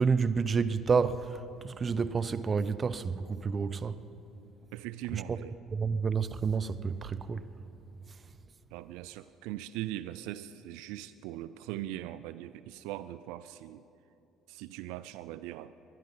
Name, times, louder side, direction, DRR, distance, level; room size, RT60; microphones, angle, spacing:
voice 1, 0.0-4.0 5.1-5.4 5.7-7.5, right 5 dB, 35° right, 0.7 m, -29 dB
voice 2, 4.7-5.6 8.7-13.8 14.5-15.7, right 14 dB, 80° right, 0.3 m, -40 dB
20.5 x 11.5 x 5.6 m
supercardioid pair, 75°, 0 cm